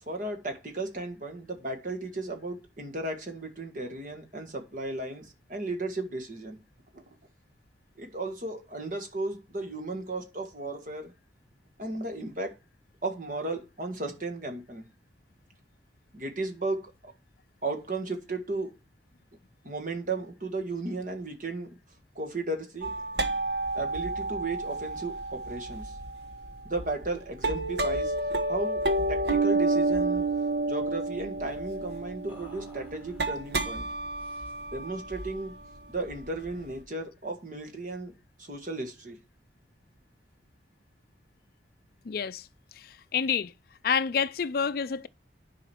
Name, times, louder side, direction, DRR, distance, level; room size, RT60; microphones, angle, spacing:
voice 1, 0.1-6.6 6.9-7.0 8.0-11.1 11.8-12.5 13.0-14.8 16.1-17.1 17.6-18.7 19.6-21.8 22.2-22.9 23.7-26.0 26.6-28.1 28.5-28.8 29.1-30.2 30.7-33.9 34.7-35.5 35.9-38.1 38.4-39.2, right 2 dB, 45° right, 1.8 m, -35 dB
sound 1, 22.8-36.7, right 2 dB, 60° right, 1.2 m, -30 dB
sound 2, 30.4-30.7 32.3-33.5 34.2-34.8, equal, 10° right, 3.4 m, -55 dB
voice 2, 42.0-42.5 42.7-43.5 43.8-45.1, left 6 dB, 50° left, 0.4 m, -28 dB
9.9 x 5.0 x 4.5 m
head